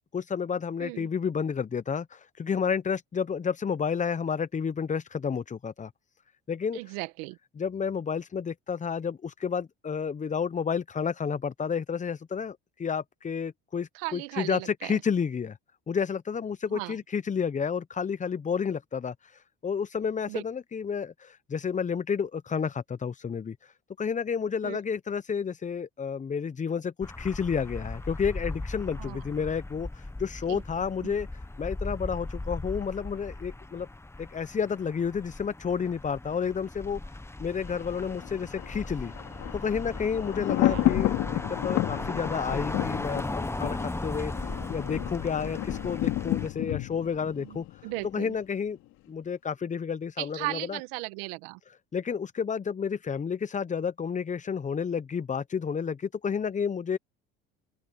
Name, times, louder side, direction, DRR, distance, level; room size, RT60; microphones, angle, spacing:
voice 1, 0.1-5.9 6.5-6.9 7.6-15.6 15.9-33.9 34.2-37.0 37.4-39.1 39.5-48.8 49.1-50.8 51.9-57.0, left 6 dB, 25° left, 0.8 m, -31 dB
voice 2, 6.7-7.4 13.9-15.0 16.7-17.0 20.3-20.4 24.6-24.8 29.0-29.2 30.5-30.6 31.0-31.1 40.7-40.9 47.4-48.3 50.2-51.6, right 22 dB, 80° right, 1.6 m, -36 dB
sound 1, 27.0-46.5, left 2 dB, 10° left, 1.2 m, -37 dB
Thunder, 37.5-48.4 48.7-48.8, left 16 dB, 65° left, 3.2 m, -31 dB
open air
hypercardioid pair, 70°, 30 cm